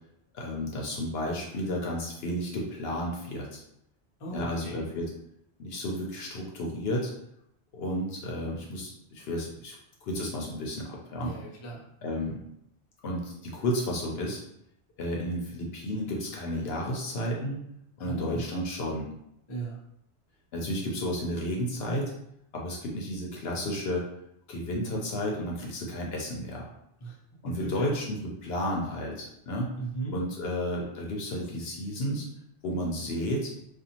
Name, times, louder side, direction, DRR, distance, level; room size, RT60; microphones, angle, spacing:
voice 1, 0.3-3.6 4.3-5.1 5.6-7.1 7.7-11.3 12.0-12.4 13.0-14.4 15.0-17.6 18.0-19.1 20.5-22.1 22.5-24.1 24.5-26.7 27.4-29.7 30.1-32.3 32.6-33.5, equal, 65° left, -1 dB, 0.8 m, -32 dB
voice 2, 4.2-4.9 11.2-11.8 18.0-18.4 19.5-19.8 27.0-27.1 27.4-27.9 29.8-30.1, right 3 dB, 35° left, -4 dB, 0.5 m, -36 dB
2.6 x 2.4 x 2.8 m, 0.76 s
omnidirectional pair, 1.2 m